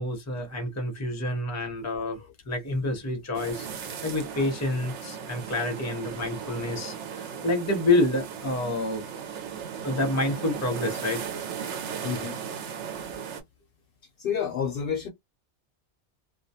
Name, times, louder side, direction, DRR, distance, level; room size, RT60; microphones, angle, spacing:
voice 1, 0.0-2.2 2.5-9.0 9.8-11.2, left 2 dB, 20° left, 0.6 m, -28 dB
sound 1, 3.3-13.4, right 7 dB, 85° right, 0.9 m, -36 dB
voice 2, 12.0-12.4 14.2-15.1, left 7 dB, 65° left, 0.7 m, -29 dB
2.2 x 2.2 x 2.6 m
omnidirectional pair, 1.2 m